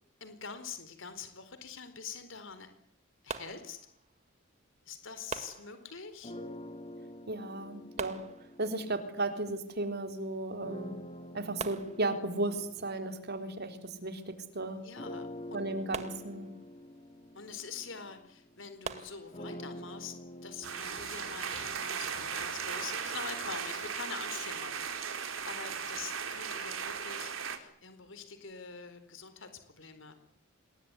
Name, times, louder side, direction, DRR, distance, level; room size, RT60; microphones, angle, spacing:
voice 1, 0.2-2.7 3.2-3.8 4.9-6.3 14.8-15.6 17.3-20.1 20.4-30.1, left 5 dB, 70° left, 10 dB, 4.4 m, -45 dB
sound 1, 3.3-4.3 5.3-6.3 8.0-9.0 10.6-10.7 11.0-11.1 11.6-12.7 15.9-16.9 18.8-19.7, right 4 dB, 35° right, 2.1 m, -43 dB
sound 2, 6.2-9.8 10.6-14.4 15.0-22.9, left 1 dB, 30° left, 3.2 m, -47 dB
voice 2, 7.3-8.2 8.6-10.9 11.3-14.8 15.5-16.5, right 2 dB, 55° right, 7 dB, 3.8 m, -35 dB
sound 3, 20.6-27.6, right 6 dB, 90° right, 4.3 m, -37 dB
27.0 x 21.5 x 9.9 m, 0.65 s
head